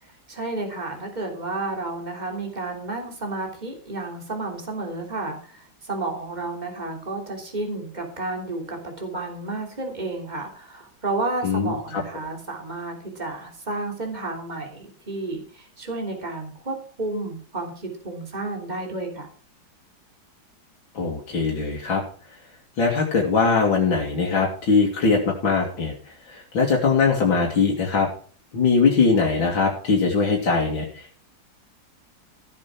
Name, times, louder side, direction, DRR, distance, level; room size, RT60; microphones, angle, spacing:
voice 1, 0.0-19.3, right 2 dB, 20° right, 2 dB, 3.4 m, -31 dB
voice 2, 11.4-12.0 20.9-22.0 22.8-25.9 26.3-28.1 28.5-31.2, left 4 dB, 80° left, -1 dB, 3.3 m, -21 dB
16.0 x 7.6 x 6.0 m, 0.42 s
omnidirectional pair, 2.1 m